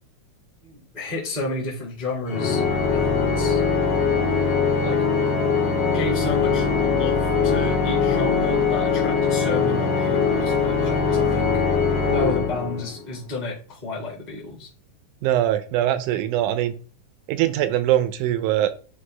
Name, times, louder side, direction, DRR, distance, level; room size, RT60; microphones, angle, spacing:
voice 1, 0.6-2.6 2.9-3.6 4.7-5.0 5.8-11.6 12.1-14.7, left 2 dB, 20° left, -4 dB, 1.2 m, -31 dB
Organ, 2.3-13.1, left 5 dB, 75° left, 1.0 m, -21 dB
voice 2, 15.2-16.7 17.3-18.7, right 12 dB, 80° right, 12 dB, 2.0 m, -22 dB
9.4 x 3.3 x 3.2 m, 0.39 s
omnidirectional pair, 3.6 m